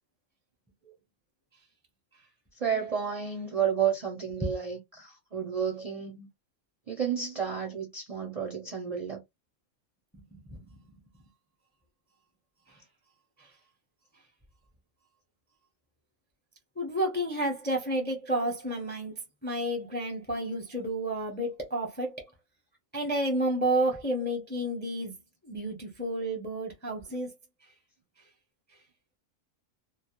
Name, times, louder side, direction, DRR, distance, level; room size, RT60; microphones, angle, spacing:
voice 1, 2.6-6.3 6.9-9.2, right 7 dB, 50° right, 0.4 m, -31 dB
voice 2, 10.1-10.7 16.8-22.2 22.9-25.2 25.4-27.3, right 1 dB, 10° left, 0.5 m, -31 dB
2.2 x 2.0 x 2.8 m
omnidirectional pair, 1.3 m